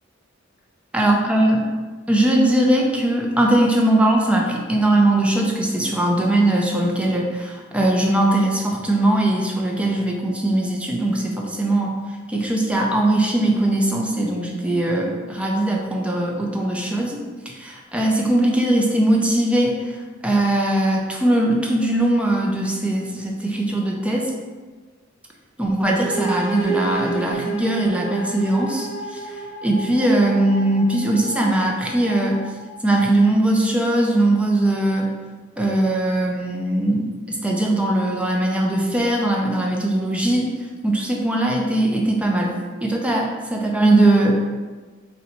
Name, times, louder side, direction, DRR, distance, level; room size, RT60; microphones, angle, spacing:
voice 1, 0.9-1.6 2.1-12.0 12.3-17.2 17.6-20.0 20.2-24.3 25.6-32.4 32.8-35.2 35.6-40.5 40.8-44.3, right 1 dB, 5° right, -1 dB, 0.5 m, -20 dB
sound 1, 25.8-33.5, right 4 dB, 85° left, 0.8 m, -32 dB
3.9 x 2.2 x 4.2 m, 1.4 s
head